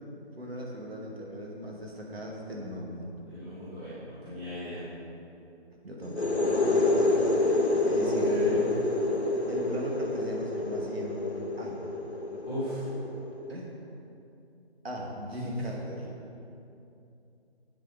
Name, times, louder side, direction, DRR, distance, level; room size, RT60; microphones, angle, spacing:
voice 1, 0.4-3.2 5.8-7.1 7.8-8.6 9.5-11.9 12.3-12.4 13.5-13.7 14.8-16.1, equal, 65° right, -1 dB, 2.3 m, -38 dB
voice 2, 3.3-4.8 8.0-8.5 12.5-12.8 15.4-15.5, equal, 5° right, -15 dB, 1.0 m, -35 dB
sound 1, 6.0-13.6, left 2 dB, 90° left, 1.7 m, -28 dB
10.0 x 8.0 x 5.2 m, 2.7 s
figure-of-eight pair, 165°, 32 cm